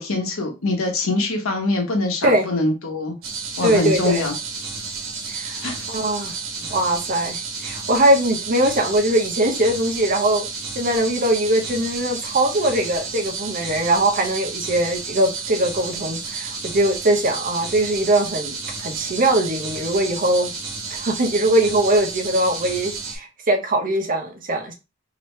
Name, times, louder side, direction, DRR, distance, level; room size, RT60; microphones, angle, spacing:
voice 1, 0.0-3.1 3.6-4.3 5.6-5.7, left 2 dB, 85° left, 1.1 m, -23 dB
sound 1, 3.2-23.2, right 4 dB, 70° right, 1.1 m, -32 dB
voice 2, 3.6-4.2 5.3-6.4 6.7-10.5 10.8-20.5 20.9-24.7, right 1 dB, 40° right, 0.7 m, -21 dB
3.1 x 2.9 x 3.1 m
head